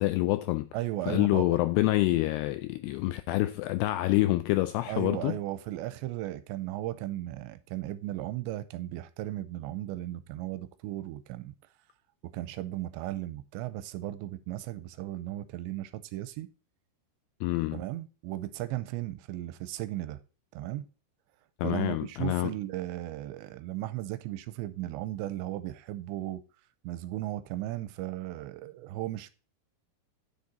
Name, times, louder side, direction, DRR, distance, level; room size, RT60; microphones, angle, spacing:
voice 1, 0.0-0.7 1.1-5.4 17.4-17.8 21.6-22.5, left 17 dB, 85° left, 2.3 m, -27 dB
voice 2, 0.7-1.5 4.9-11.5 12.2-16.5 17.7-20.2 20.5-20.9 21.6-26.4 26.8-29.3, right 14 dB, 85° right, 2.8 m, -36 dB
9.4 x 6.6 x 4.1 m
omnidirectional pair, 5.2 m